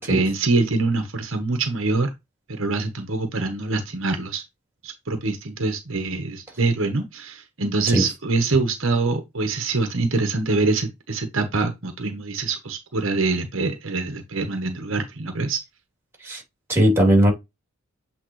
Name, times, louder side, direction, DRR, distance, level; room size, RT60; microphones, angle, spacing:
voice 1, 0.1-2.1 2.5-4.4 4.8-15.6, right 3 dB, 60° right, 1.1 m, -24 dB
voice 2, 16.7-17.3, right 1 dB, 10° right, 2.9 m, -17 dB
8.3 x 3.6 x 3.1 m
head